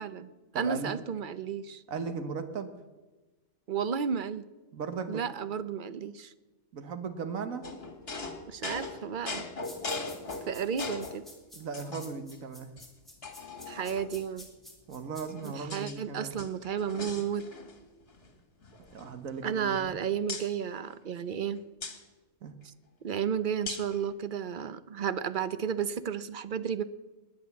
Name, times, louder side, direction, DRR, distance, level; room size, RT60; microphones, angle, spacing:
voice 1, 0.0-1.8 3.7-4.5 5.1-6.3 8.5-9.5 10.4-11.2 13.7-14.5 15.4-17.4 19.4-21.6 23.0-26.8, right 7 dB, 45° right, 14 dB, 0.8 m, -33 dB
voice 2, 0.5-1.0 1.9-2.7 4.7-5.2 6.7-7.7 11.5-12.7 14.9-16.4 18.9-20.0 22.4-22.5, right 5 dB, 90° right, 9 dB, 1.6 m, -37 dB
sound 1, 7.6-11.2 11.7-12.4 12.8-12.9 13.2-14.3 15.0-16.0 16.3-17.8 18.1-18.3 18.6-19.9 20.3-20.5 21.8-22.0 23.7-24.0, left 3 dB, 50° left, 2.1 m, -40 dB
sound 2, 9.6-15.5, left 1 dB, ahead, 3.5 m, -50 dB
19.0 x 10.5 x 7.1 m, 1.2 s
omnidirectional pair, 1.4 m